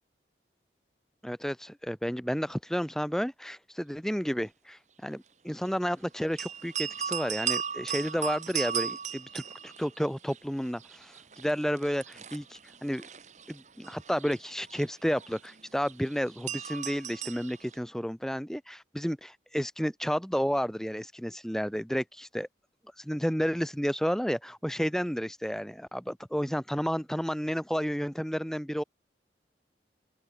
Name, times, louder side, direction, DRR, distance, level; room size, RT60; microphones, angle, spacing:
voice 1, 1.2-13.1 13.5-22.5 23.0-28.8, equal, 5° left, 2.0 m, -31 dB
sound 1, 6.4-10.4 10.6-17.7, right 8 dB, 40° right, 1.8 m, -36 dB
open air
head